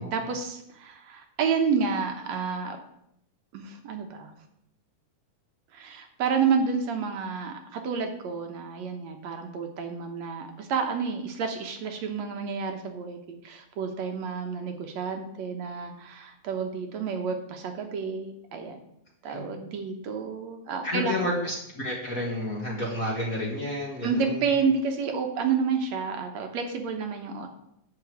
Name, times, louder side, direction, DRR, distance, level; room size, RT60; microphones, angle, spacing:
voice 1, 0.0-2.8 3.5-4.3 5.7-18.8 19.2-21.2 24.0-27.5, right 5 dB, 70° right, 5 dB, 2.2 m, -30 dB
voice 2, 20.8-24.4, left 1 dB, 35° left, -2 dB, 1.7 m, -31 dB
11.0 x 4.5 x 8.0 m, 0.77 s
omnidirectional pair, 3.4 m